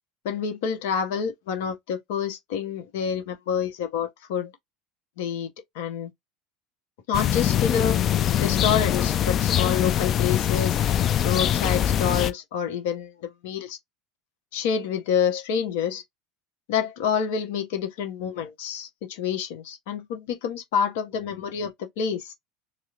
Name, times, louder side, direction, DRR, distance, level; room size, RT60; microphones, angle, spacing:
voice 1, 0.2-4.5 5.2-5.5 5.7-6.1 7.1-8.0 8.4-10.8 11.2-13.8 14.5-16.0 16.7-22.3, left 7 dB, 60° left, 0.9 m, -28 dB
sound 1, 7.1-12.3, left 10 dB, 40° left, 0.4 m, -23 dB
4.2 x 2.0 x 2.4 m
figure-of-eight pair, 70°, 0 cm